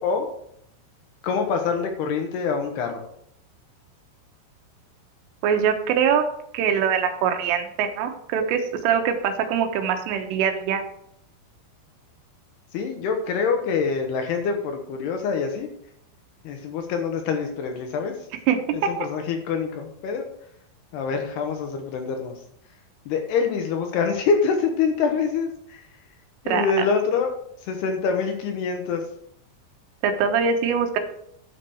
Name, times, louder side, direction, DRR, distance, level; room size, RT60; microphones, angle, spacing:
voice 1, 1.2-3.0 12.7-15.7 16.4-18.2 18.7-20.3 20.9-22.3 23.1-25.9 26.4-27.3 27.6-29.0, left 5 dB, 70° left, 4 dB, 2.6 m, -25 dB
voice 2, 5.4-6.3 6.5-10.8 18.5-18.6 26.5-26.7 30.0-31.0, right 7 dB, 90° right, 5 dB, 3.8 m, -23 dB
11.5 x 5.9 x 6.3 m, 0.72 s
omnidirectional pair, 5.5 m